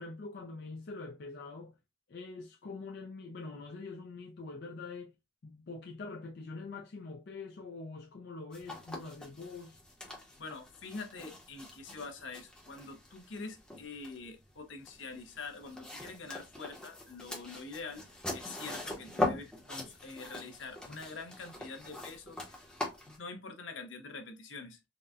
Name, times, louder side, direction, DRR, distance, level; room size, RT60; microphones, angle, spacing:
voice 1, 0.0-1.7 2.1-5.1 5.4-9.8, left 3 dB, 60° left, 0.4 m, -44 dB
sound 1, 8.5-23.2, left 2 dB, 5° left, 0.7 m, -42 dB
voice 2, 10.4-22.6 23.1-24.9, left 4 dB, 85° left, 0.7 m, -45 dB
3.9 x 2.1 x 2.4 m
head